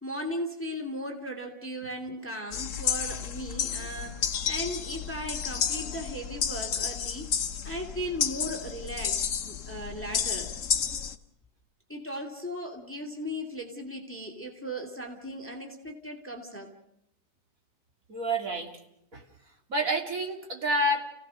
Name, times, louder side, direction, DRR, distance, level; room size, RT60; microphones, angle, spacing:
voice 1, 0.0-7.3 7.6-10.5 11.9-16.7, equal, 5° left, 3 dB, 2.5 m, -37 dB
sound 1, 2.5-11.1, left 7 dB, 50° left, 1.2 m, -31 dB
voice 2, 18.1-18.7 19.1-19.2 19.7-21.0, right 1 dB, 45° right, 2 dB, 3.3 m, -28 dB
30.0 x 17.0 x 6.4 m, 0.79 s
omnidirectional pair, 2.1 m